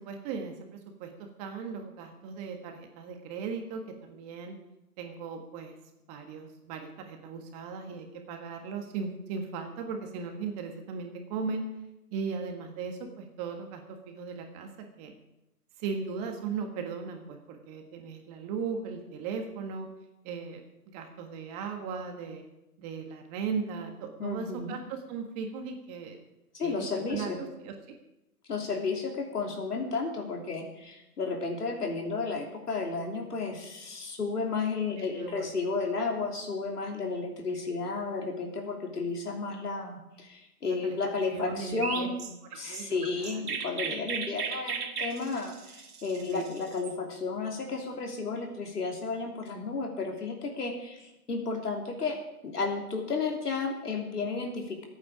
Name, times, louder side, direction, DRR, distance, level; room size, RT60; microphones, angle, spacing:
voice 1, 0.0-4.5 5.0-5.8 6.1-11.7 12.1-14.7 15.0-15.1 15.8-19.9 20.2-20.6 20.9-22.4 22.8-26.2 26.6-26.8 27.1-28.0 34.9-35.4 40.6-41.0 41.3-42.1 42.5-43.4 46.1-46.6, right 5 dB, 25° right, 4 dB, 1.5 m, -37 dB
voice 2, 24.2-24.7 26.5-27.4 28.5-42.1 42.6-52.2 52.4-54.8, left 4 dB, 85° left, 1 dB, 3.2 m, -33 dB
Chirp tweet, 41.8-46.9, right 6 dB, 75° right, 2.1 m, -36 dB
21.5 x 8.8 x 5.0 m, 0.94 s
hypercardioid pair, 145°, 45 cm